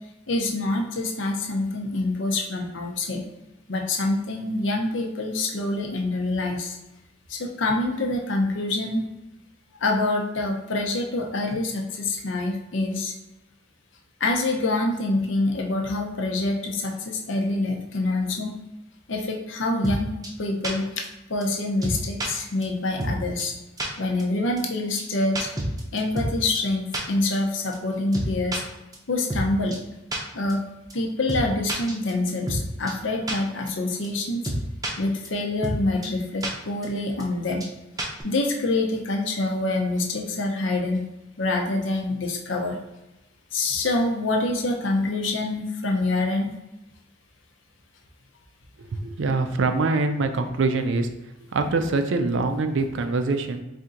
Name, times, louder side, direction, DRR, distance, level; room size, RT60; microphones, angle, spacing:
voice 1, 0.3-3.2 3.7-6.8 7.3-9.1 9.8-13.1 14.2-18.5 19.1-20.1 20.4-20.9 21.3-23.5 24.0-25.5 25.9-28.6 29.1-29.7 30.3-30.6 30.9-34.4 35.0-37.7 38.2-41.1 41.4-42.8 43.5-46.5, left 2 dB, 70° left, 2 dB, 0.7 m, -26 dB
sound 1, 19.8-20.0 20.2-20.3 20.6-20.7 21.0-21.1 21.4-21.5 21.8-22.3 22.6-22.7 23.0-23.1 23.4-23.5 23.8-23.9 24.2-24.3 24.6-24.7 25.0-25.1 25.4-26.3 26.6-26.7 26.9-27.0 27.3-27.4 27.7-27.8 28.1-28.6 28.9-29.0 29.3-29.4 29.7-29.8 30.1-30.2 30.5-30.6 30.9-31.0 31.3-31.4 31.7-32.6 32.9-33.0 33.3-33.4 33.7-33.8 34.0-34.1 34.4-34.9 35.2-35.3 35.6-35.8 36.0-36.1 36.4-36.5 36.8-36.9 37.2-37.3 37.6-37.7 38.0-38.2, right 1 dB, 20° right, 0.6 m, -28 dB
voice 2, 48.8-51.1 51.5-53.6, right 3 dB, 65° right, 7 dB, 0.4 m, -24 dB
4.3 x 2.7 x 3.7 m, 0.96 s
head